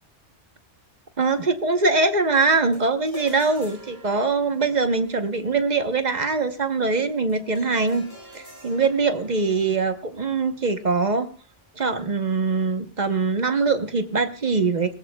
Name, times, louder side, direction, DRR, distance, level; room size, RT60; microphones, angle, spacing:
voice 1, 1.2-8.1 8.3-11.3 11.8-14.9, right 4 dB, 40° right, 8 dB, 1.0 m, -22 dB
sound 1, 2.5-12.0, right 1 dB, 15° left, 6.1 m, -49 dB
20.0 x 19.0 x 2.2 m, 0.38 s
omnidirectional pair, 1.2 m